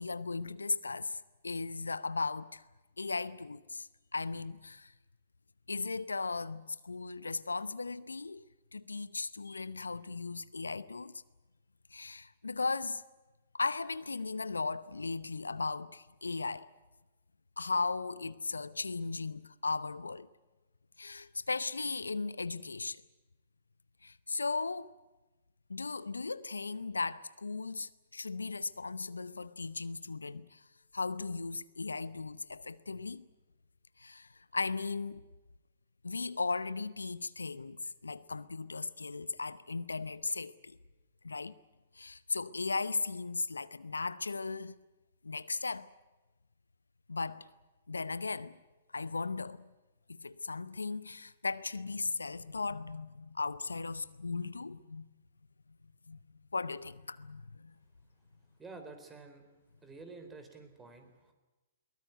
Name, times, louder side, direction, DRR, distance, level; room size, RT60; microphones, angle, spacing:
voice 1, 0.0-2.6 3.0-4.9 5.7-8.4 8.7-11.1 11.9-13.0 13.5-16.7 17.6-20.3 21.0-23.0 24.0-24.9 25.7-30.6 30.9-33.2 34.0-35.2 36.0-40.8 41.2-41.6 41.9-44.7 45.2-45.9 47.1-47.5 47.9-48.6 48.9-49.6 50.2-55.1 56.1-56.2 56.5-57.7, left 4 dB, 85° left, 0.8 m, -37 dB
voice 2, 58.6-59.4 59.8-61.3, right 3 dB, 15° right, 4.0 m, -50 dB
22.0 x 19.5 x 9.3 m
figure-of-eight pair, 120°, 0 cm